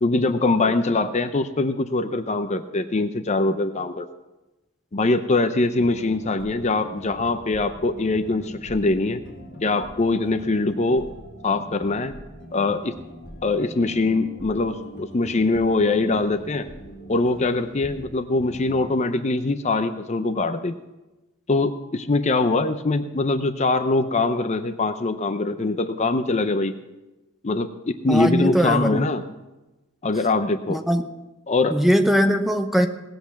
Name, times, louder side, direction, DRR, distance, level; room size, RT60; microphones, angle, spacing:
voice 1, 0.0-4.1 4.9-9.2 9.6-11.1 11.4-12.1 12.5-12.9 13.4-16.6 17.1-20.7 21.5-26.7 27.4-29.2 30.0-30.8 31.5-31.8, left 3 dB, 35° left, 9 dB, 0.6 m, -23 dB
sound 1, 5.7-18.1 18.4-18.9, equal, 55° left, 2.9 m, -42 dB
voice 2, 28.1-29.1 30.7-31.0 31.7-32.9, equal, ahead, 7 dB, 0.7 m, -20 dB
18.5 x 7.9 x 5.9 m, 1.0 s
head